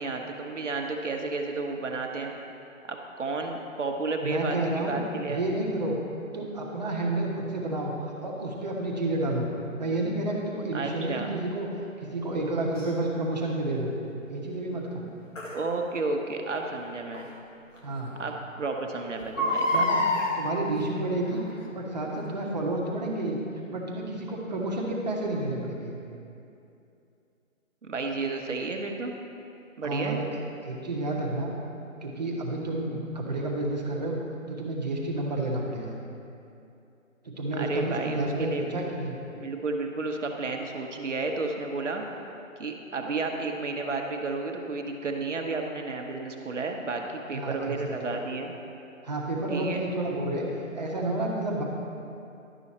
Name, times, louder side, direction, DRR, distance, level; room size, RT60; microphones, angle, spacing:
voice 1, 0.0-2.3 2.9-5.4 10.7-11.3 15.5-17.3 18.2-19.9 27.8-29.1 29.8-30.2 37.6-38.7 39.4-42.0 42.6-48.5 49.5-49.8, right 3 dB, 60° right, 2 dB, 1.1 m, -32 dB
voice 2, 4.2-6.0 6.3-9.5 9.8-11.7 12.0-13.9 14.3-15.1 17.8-18.1 19.4-20.0 20.3-23.4 23.7-25.9 29.8-30.2 30.6-31.5 32.0-34.2 34.5-35.9 37.2-39.2 47.3-48.1 49.0-50.5 50.7-51.6, right 2 dB, 30° right, -2 dB, 1.1 m, -30 dB
Crying sobbing, 12.7-12.9 15.4-15.5 17.1-17.2 17.8-17.9 18.1-18.2 19.2-20.3 21.2-21.6 22.1-22.2, left 1 dB, 65° left, 1.7 m, -26 dB
11.5 x 6.2 x 4.2 m, 2.7 s
figure-of-eight pair, 165°, 40 cm